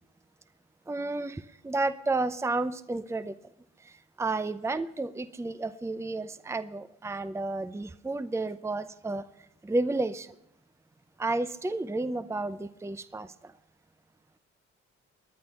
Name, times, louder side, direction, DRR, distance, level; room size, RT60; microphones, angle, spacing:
voice 1, 0.9-3.3 3.8-9.3 9.6-10.3 11.2-13.5, right 2 dB, 10° right, 13 dB, 0.7 m, -31 dB
21.5 x 9.4 x 5.7 m, 0.81 s
supercardioid pair, 50°, 31 cm